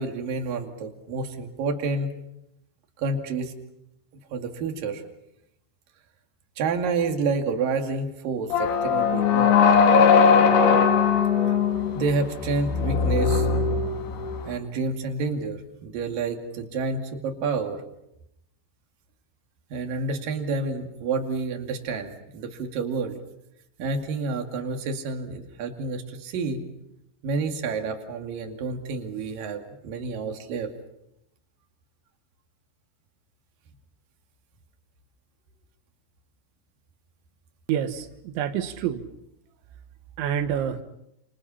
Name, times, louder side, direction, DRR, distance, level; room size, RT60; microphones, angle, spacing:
voice 1, 0.0-2.1 3.0-3.5 4.3-5.0 6.6-9.6 11.9-13.5 14.5-17.8 19.7-23.2 23.8-26.7 27.2-30.7, right 4 dB, 55° right, 4 dB, 3.7 m, -29 dB
sound 1, 8.5-14.5, left 6 dB, 80° left, 4.5 m, -20 dB
voice 2, 37.7-39.0 40.2-40.8, right 9 dB, 90° right, 9 dB, 3.6 m, -27 dB
29.5 x 28.5 x 5.8 m, 0.83 s
omnidirectional pair, 5.1 m